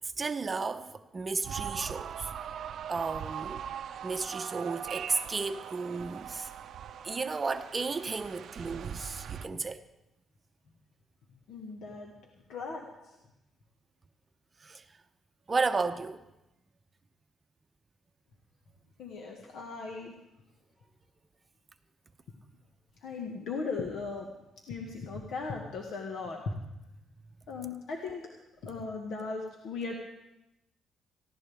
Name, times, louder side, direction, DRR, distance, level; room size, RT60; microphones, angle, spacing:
voice 1, 0.2-2.3 2.9-3.6 4.0-6.5 7.0-9.8 14.6-14.8 15.5-16.2, right 4 dB, 30° right, 0.7 m, -33 dB
sound 1, 1.4-9.5, right 8 dB, 65° right, 0.6 m, -41 dB
voice 2, 11.5-12.1 12.5-13.2 19.0-20.1 23.0-24.3 24.7-26.5 27.5-28.3 28.6-29.9, left 4 dB, 75° left, 1.6 m, -37 dB
18.0 x 15.5 x 3.5 m
cardioid pair, 90°, 0 cm